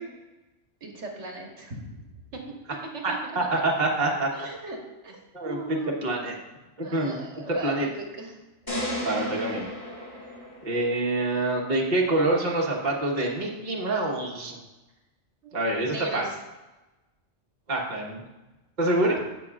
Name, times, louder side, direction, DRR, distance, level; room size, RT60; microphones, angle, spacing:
voice 1, 0.8-1.8 2.3-2.4 2.9-3.6 4.3-4.8 5.0-6.0 6.8-8.4 15.4-15.6 15.9-16.3, right 3 dB, 75° right, 0 dB, 1.6 m, -38 dB
voice 2, 3.0-4.3 5.3-5.6 6.0-6.3 6.8-7.9 9.0-9.7 10.6-14.6 15.5-16.3 17.7-18.2 18.8-19.2, right 2 dB, 40° right, -2 dB, 1.4 m, -26 dB
sound 1, 8.7-11.0, left 1 dB, 15° left, 3.2 m, -33 dB
16.0 x 6.1 x 2.5 m, 1.1 s
omnidirectional pair, 1.2 m